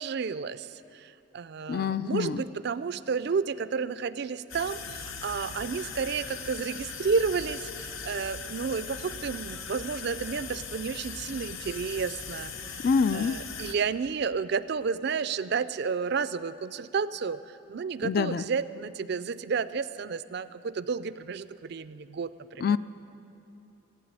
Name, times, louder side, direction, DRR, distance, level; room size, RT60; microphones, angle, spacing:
voice 1, 0.0-22.7, right 5 dB, 55° right, 15 dB, 0.4 m, -31 dB
voice 2, 1.7-2.4 12.8-13.4 18.0-18.4 22.6-22.8, left 5 dB, 50° left, 15 dB, 0.3 m, -26 dB
sound 1, 4.5-13.7, left 5 dB, 90° left, 0.9 m, -39 dB
15.5 x 8.5 x 9.5 m, 2.9 s
head